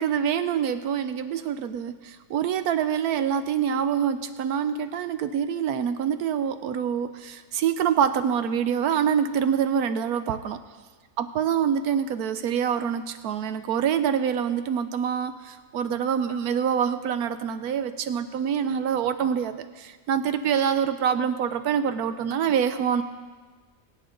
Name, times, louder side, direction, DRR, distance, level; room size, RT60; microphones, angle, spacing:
voice 1, 0.0-10.6 11.2-23.0, right 8 dB, 75° right, 10 dB, 1.1 m, -26 dB
23.5 x 8.7 x 3.8 m, 1.4 s
omnidirectional pair, 1.6 m